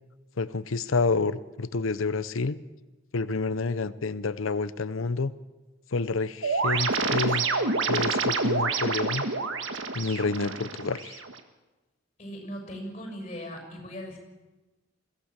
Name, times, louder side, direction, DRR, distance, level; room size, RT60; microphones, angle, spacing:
voice 1, 0.4-2.6 3.1-5.3 5.9-7.5 7.9-9.2 9.9-11.2, left 3 dB, 85° left, 16 dB, 0.7 m, -28 dB
sound 1, 6.4-11.4, right 4 dB, 75° right, 1.6 m, -28 dB
voice 2, 12.2-14.2, equal, 30° left, 3 dB, 6.5 m, -38 dB
22.0 x 16.0 x 7.4 m, 1.1 s
head